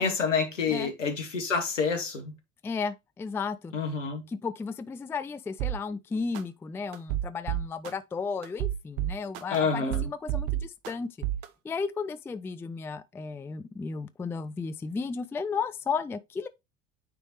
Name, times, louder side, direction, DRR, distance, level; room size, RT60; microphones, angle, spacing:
voice 1, 0.0-2.3 3.7-4.2 9.5-10.1, left 5 dB, 80° left, 1.8 m, -28 dB
voice 2, 2.6-3.7 4.3-11.1 11.6-16.5, left 5 dB, 5° left, 0.3 m, -34 dB
sound 1, 5.6-5.8 6.3-6.4 6.9-7.9 8.4-9.6 9.9-10.9 11.2-11.5, right 13 dB, 55° right, 0.9 m, -29 dB
9.2 x 3.4 x 3.0 m
figure-of-eight pair, 70°, 37 cm